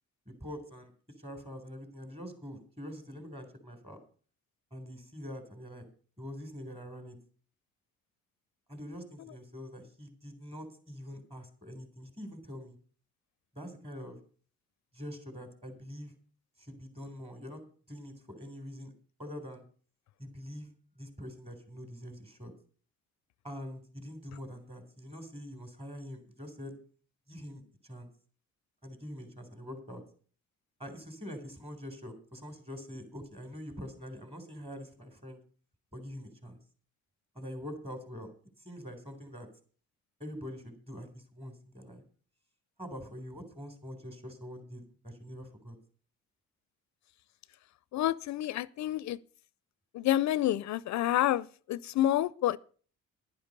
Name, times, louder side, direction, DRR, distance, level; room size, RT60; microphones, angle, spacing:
voice 1, 0.3-0.9 1.2-4.0 4.7-5.8 6.2-7.2 8.7-12.8 13.5-14.2 14.9-16.1 16.6-17.6 17.9-18.9 19.2-19.6 20.2-20.7 21.0-22.5 23.4-26.7 27.3-28.1 28.8-30.0 30.8-35.4 35.9-36.6 37.4-38.3 38.6-39.5 40.2-42.0 42.8-45.8, equal, 20° right, 3.6 m, -44 dB
voice 2, 47.9-49.2 49.9-52.6, left 13 dB, 65° left, 0.4 m, -29 dB
11.0 x 10.5 x 5.3 m
cardioid pair, 90°, 30 cm